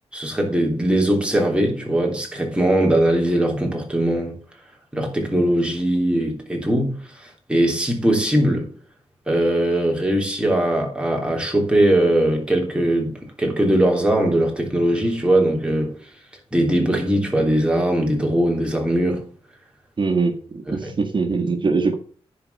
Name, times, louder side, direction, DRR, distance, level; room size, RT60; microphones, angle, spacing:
voice 1, 0.1-4.4 4.9-8.7 9.3-15.9 16.5-19.2 20.8-20.9, right 1 dB, 10° right, 3.3 m, -20 dB
voice 2, 20.0-21.9, right 4 dB, 45° right, 1.8 m, -22 dB
10.5 x 4.8 x 6.8 m
wide cardioid pair, 110°, 11 cm